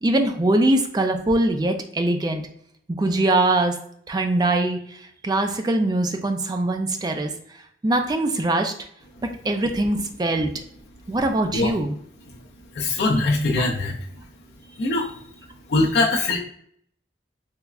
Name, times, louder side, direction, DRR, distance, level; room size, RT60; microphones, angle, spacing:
voice 1, 0.0-2.4 2.9-3.8 4.1-5.0 5.2-7.3 7.8-8.7 9.2-10.5 11.1-11.9 13.6-13.7, right 2 dB, 20° right, 5 dB, 0.3 m, -22 dB
voice 2, 12.8-13.9 14.8-15.1 15.7-16.4, left 2 dB, 70° left, -4 dB, 0.5 m, -21 dB
3.4 x 3.1 x 2.3 m, 0.66 s
head